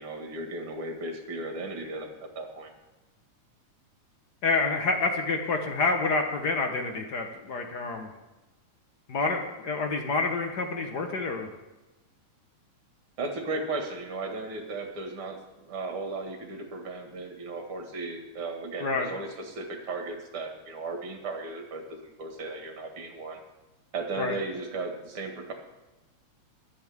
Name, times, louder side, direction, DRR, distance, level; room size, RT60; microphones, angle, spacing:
voice 1, 0.0-2.7 13.2-15.4 15.6-23.4 23.9-25.5, right 3 dB, 45° right, 3 dB, 2.5 m, -36 dB
voice 2, 4.4-8.1 9.1-11.5 18.8-19.1 24.2-24.3, left 3 dB, 60° left, 4 dB, 1.0 m, -28 dB
25.5 x 8.7 x 3.6 m, 1.1 s
omnidirectional pair, 3.5 m